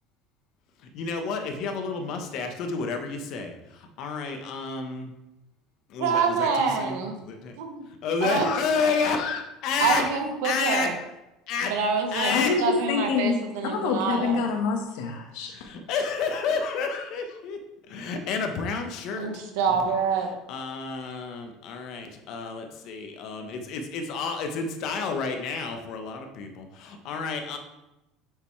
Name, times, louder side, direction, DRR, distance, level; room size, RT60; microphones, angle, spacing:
voice 1, 0.9-5.1 5.9-7.6 7.9-10.1 10.4-11.0 11.5-11.8 12.1-12.6 15.5-17.6 17.9-19.3 19.6-19.9 20.5-27.6, left 5 dB, 60° left, 5 dB, 1.1 m, -30 dB
voice 2, 6.0-7.2 7.6-7.9 8.2-8.5 9.8-10.9 11.6-12.3 12.6-14.4 19.1-20.3, right 5 dB, 80° right, 4 dB, 1.2 m, -26 dB
voice 3, 12.3-13.4 13.7-15.5, left 5 dB, 75° left, 3 dB, 1.3 m, -26 dB
6.8 x 6.7 x 3.2 m, 0.93 s
supercardioid pair, 105°, 0 cm